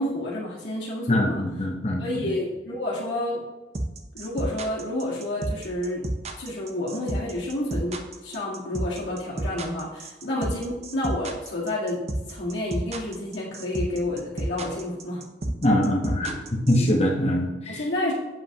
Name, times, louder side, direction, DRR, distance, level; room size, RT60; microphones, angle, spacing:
voice 1, 0.0-1.4 2.0-3.4 4.1-6.1 6.4-12.0 12.3-15.2 16.8-17.0 17.7-18.1, left 1 dB, 90° left, -7 dB, 1.8 m, -30 dB
voice 2, 1.1-2.3 15.6-17.8, left 1 dB, 35° left, 0 dB, 1.0 m, -23 dB
sound 1, 3.7-16.9, right 1 dB, 35° right, 0.6 m, -30 dB
7.6 x 7.5 x 2.9 m, 1.1 s
head